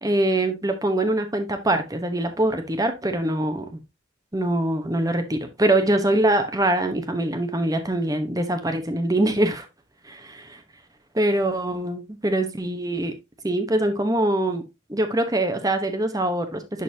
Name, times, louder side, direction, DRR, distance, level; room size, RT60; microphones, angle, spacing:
voice 1, 0.0-3.8 4.3-9.7 10.0-10.6 11.1-13.1 13.4-14.6 14.9-16.8, right 1 dB, 20° right, 1.0 m, -23 dB
11.0 x 3.9 x 2.8 m
head